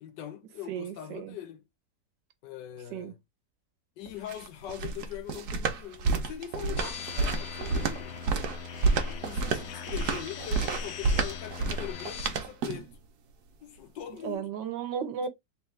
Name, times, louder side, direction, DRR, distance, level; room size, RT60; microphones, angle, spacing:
voice 1, 0.0-1.6 2.4-3.2 4.0-8.2 9.0-13.0 13.6-14.5, left 11 dB, 85° left, 1.4 m, -42 dB
voice 2, 0.7-1.4 2.9-3.1 14.2-15.3, right 7 dB, 90° right, 1.6 m, -34 dB
sound 1, 4.1-13.0, right 4 dB, 70° right, 1.2 m, -30 dB
sound 2, 6.8-12.3, left 7 dB, 65° left, 0.7 m, -41 dB
3.4 x 3.1 x 3.1 m
omnidirectional pair, 1.9 m